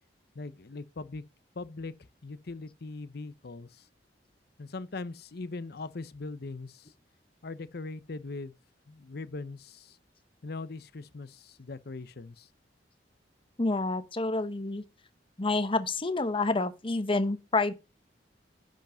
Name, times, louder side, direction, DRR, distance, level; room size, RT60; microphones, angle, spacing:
voice 1, 0.3-1.2 1.5-3.9 4.6-6.9 7.4-8.5 8.9-10.0 10.4-12.5, left 3 dB, 60° left, 0.7 m, -40 dB
voice 2, 13.6-14.8 15.4-17.7, left 3 dB, 30° left, 0.9 m, -28 dB
10.5 x 5.2 x 5.5 m
head